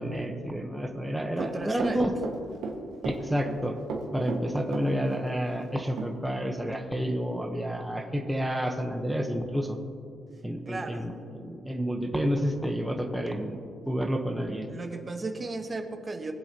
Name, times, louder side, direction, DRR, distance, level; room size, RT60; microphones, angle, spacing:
voice 1, 0.0-2.1 3.0-3.7 4.1-9.8 10.4-13.6 13.9-14.7, equal, 5° right, 3 dB, 1.0 m, -30 dB
voice 2, 1.4-2.0 10.7-11.1 14.7-16.3, right 3 dB, 30° right, 5 dB, 1.1 m, -35 dB
Run, 1.4-2.8 3.0-3.6 3.9-5.2 5.5-5.6 6.0-6.1, right 4 dB, 80° right, 1.6 m, -34 dB
21.0 x 7.9 x 2.9 m, 2.5 s
cardioid pair, 90°, 0 cm